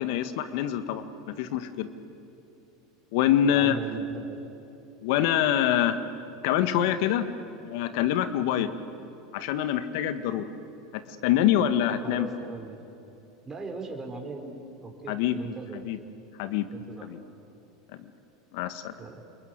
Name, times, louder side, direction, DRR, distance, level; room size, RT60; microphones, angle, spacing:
voice 1, 0.0-1.9 3.1-3.8 5.0-6.0 6.4-7.3 7.6-8.7 9.3-10.5 11.2-12.3 15.1-15.4 15.7-16.0 16.4-16.7 17.0-17.2 18.5-18.9, left 11 dB, 65° left, 10 dB, 1.9 m, -25 dB
voice 2, 3.5-4.5 12.0-12.8 13.4-14.5 14.8-15.8 16.7-17.1 18.6-18.7 19.0-19.2, right 4 dB, 20° right, 2 dB, 4.6 m, -39 dB
28.0 x 22.0 x 9.7 m, 2.9 s
hypercardioid pair, 95°, 2 cm